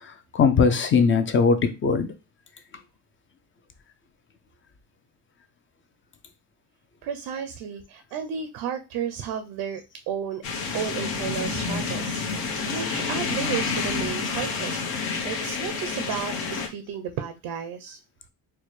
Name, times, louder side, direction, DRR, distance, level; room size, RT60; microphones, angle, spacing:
voice 1, 0.0-2.1, left 5 dB, 35° left, 0.4 m, -20 dB
voice 2, 7.0-10.4 10.7-18.0, right 8 dB, 85° right, 0.6 m, -33 dB
sound 1, 10.4-16.7, left 4 dB, 70° left, 1.0 m, -29 dB
4.4 x 2.1 x 3.1 m
cardioid pair, 140°, 38 cm